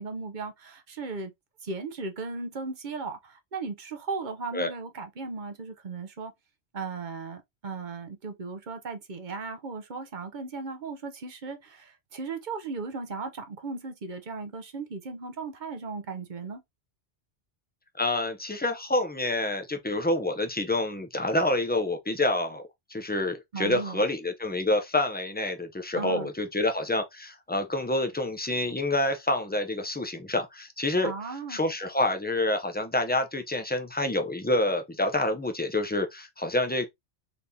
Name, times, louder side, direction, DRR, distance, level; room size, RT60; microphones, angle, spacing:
voice 1, 0.0-1.3 1.6-6.3 6.7-16.6 23.5-24.0 25.9-26.3 31.0-31.6, right 4 dB, 50° right, 0.9 m, -36 dB
voice 2, 18.0-22.6 22.9-31.1 31.5-36.9, left 1 dB, 10° left, 0.5 m, -27 dB
4.1 x 3.4 x 2.8 m
omnidirectional pair, 1.2 m